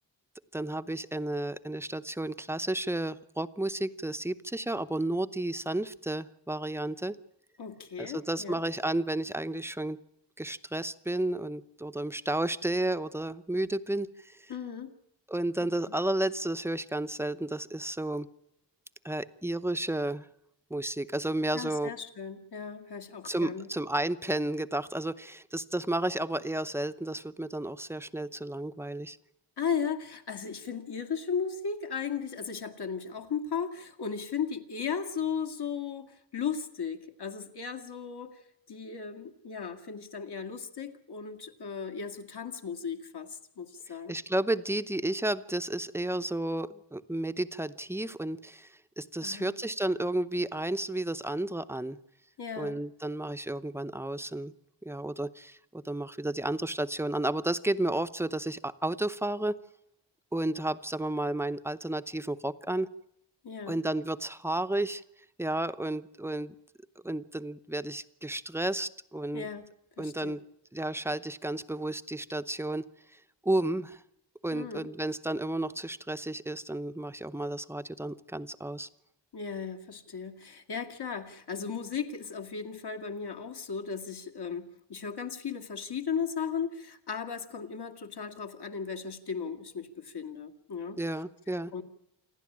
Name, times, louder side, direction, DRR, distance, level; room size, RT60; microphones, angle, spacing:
voice 1, 0.5-7.2 8.0-10.0 10.4-14.5 15.3-18.3 19.0-20.3 20.7-21.9 23.2-29.2 44.1-52.0 52.6-54.5 54.8-59.6 60.3-62.9 63.7-65.0 65.4-66.5 67.0-69.5 70.0-70.4 70.7-72.8 73.4-74.0 74.4-78.9 91.0-91.7, right 1 dB, 5° right, 13 dB, 0.7 m, -32 dB
voice 2, 7.6-8.6 14.5-14.9 21.5-23.7 29.6-44.2 49.2-49.5 52.4-52.8 63.4-63.8 69.3-69.6 70.0-70.4 74.5-74.9 79.3-91.0 91.7-91.8, left 6 dB, 60° left, 5 dB, 2.2 m, -36 dB
27.5 x 11.0 x 8.7 m, 0.81 s
wide cardioid pair, 120°, 44 cm